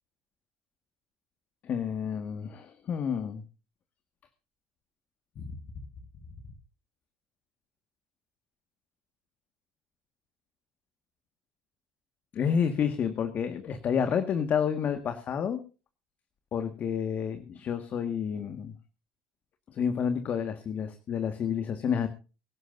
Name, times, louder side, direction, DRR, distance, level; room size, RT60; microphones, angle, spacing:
voice 1, 1.6-3.4 5.4-5.5 12.3-15.6 16.5-18.7 19.7-22.1, left 7 dB, 45° left, 8 dB, 1.7 m, -29 dB
24.0 x 11.5 x 2.7 m, 0.33 s
supercardioid pair, 105°, 4 cm